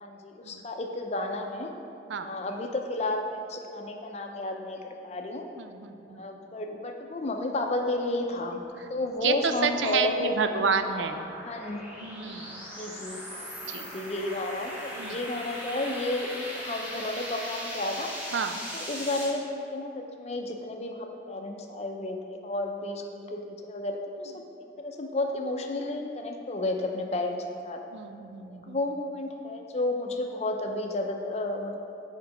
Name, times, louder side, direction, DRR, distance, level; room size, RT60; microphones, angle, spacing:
voice 1, 0.0-1.7 2.2-5.5 6.1-10.3 11.4-11.8 12.8-16.3 16.5-18.1 18.7-24.4 24.8-27.8 28.5-31.8, left 2 dB, 35° left, 3 dB, 0.5 m, -32 dB
voice 2, 5.6-6.2 9.2-11.2 12.0-12.5 13.6-13.9 15.0-15.2 18.3-18.6 27.9-28.8, right 5 dB, 90° right, 8 dB, 0.4 m, -30 dB
sound 1, 8.7-19.3, equal, 10° right, 1.2 m, -39 dB
7.0 x 4.5 x 5.1 m, 2.7 s
head